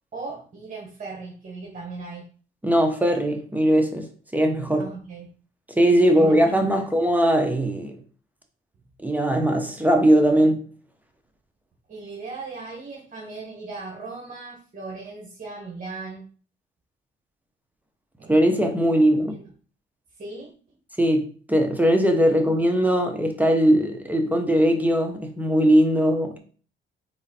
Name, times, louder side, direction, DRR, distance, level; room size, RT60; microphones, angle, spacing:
voice 1, 0.1-2.3 4.7-5.3 5.9-6.9 11.9-16.2 18.2-18.5 19.2-19.5 20.2-20.5 26.3-26.4, right 3 dB, 40° right, 1.2 m, -38 dB
voice 2, 2.6-4.1 4.3-4.9 5.8-8.0 9.0-10.6 18.3-19.4 21.0-26.4, equal, 10° right, 0.8 m, -20 dB
3.9 x 3.1 x 4.1 m
cardioid pair, 90°, 20 cm